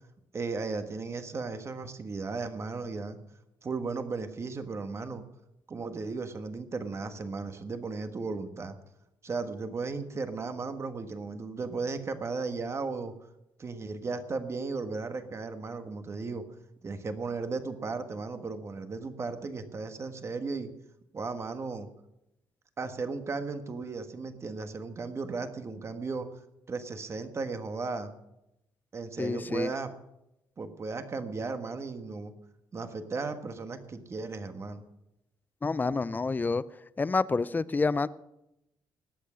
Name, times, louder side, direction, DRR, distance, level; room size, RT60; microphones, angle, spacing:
voice 1, 0.3-3.2 3.6-5.2 5.7-8.8 9.2-13.1 13.6-16.4 16.8-20.7 21.1-21.9 22.8-26.3 26.7-28.1 28.9-29.9 30.6-32.3 32.7-34.8, right 4 dB, 35° right, 8 dB, 1.5 m, -35 dB
voice 2, 29.2-29.7 35.6-36.6 37.0-38.1, left 4 dB, 20° left, 17 dB, 0.5 m, -28 dB
19.5 x 8.2 x 6.3 m, 0.86 s
cardioid pair, 110°, 8 cm